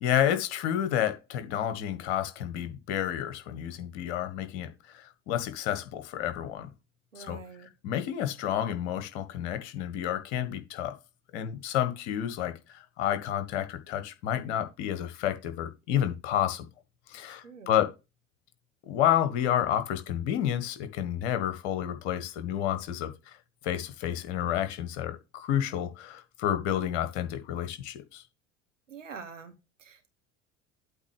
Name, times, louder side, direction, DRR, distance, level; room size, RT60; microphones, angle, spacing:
voice 1, 0.0-6.7 7.2-7.4 7.8-10.9 11.3-16.7 17.1-17.9 18.9-23.4 23.6-28.2, left 10 dB, 60° left, 1.6 m, -30 dB
voice 2, 7.1-7.7 17.3-17.7 28.9-30.1, right 5 dB, 80° right, 1.5 m, -46 dB
8.2 x 3.4 x 6.6 m
figure-of-eight pair, 65°, 37 cm